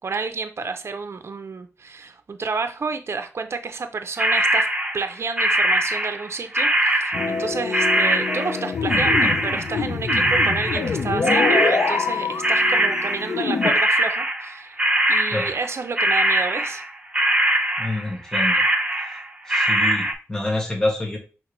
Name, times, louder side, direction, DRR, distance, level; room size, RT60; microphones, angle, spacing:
voice 1, 0.0-4.7 4.9-14.8 15.1-16.8, right 4 dB, 55° right, 0.5 m, -30 dB
sound 1, 4.2-6.3 6.5-13.4 13.6-16.9 17.1-18.1 18.3-20.1, right 1 dB, 20° right, 0.6 m, -21 dB
sound 2, 7.1-13.7, left 5 dB, 80° left, 0.4 m, -25 dB
voice 2, 17.8-18.6 19.0-19.2 19.5-21.2, left 2 dB, 10° left, 0.9 m, -27 dB
5.8 x 2.9 x 3.0 m
wide cardioid pair, 120°, 5 cm